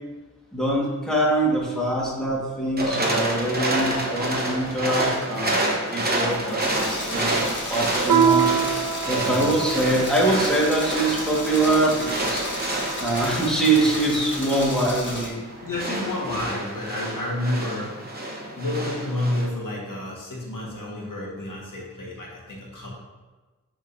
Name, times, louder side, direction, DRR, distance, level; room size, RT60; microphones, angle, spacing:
voice 1, 0.5-8.5 9.0-12.4 13.0-15.4 16.2-16.3, right 2 dB, ahead, -5 dB, 1.5 m, -24 dB
sound 1, 2.8-19.5, right 1 dB, 30° right, 0.9 m, -29 dB
sound 2, 6.6-15.3, left 1 dB, 35° left, 1.3 m, -33 dB
Piano, 8.1-13.0, right 7 dB, 90° right, 0.6 m, -26 dB
voice 2, 9.1-9.6 15.6-18.0 18.5-22.9, left 1 dB, 80° left, -3 dB, 1.4 m, -30 dB
10.5 x 3.7 x 2.6 m, 1.2 s
wide cardioid pair, 120°, 32 cm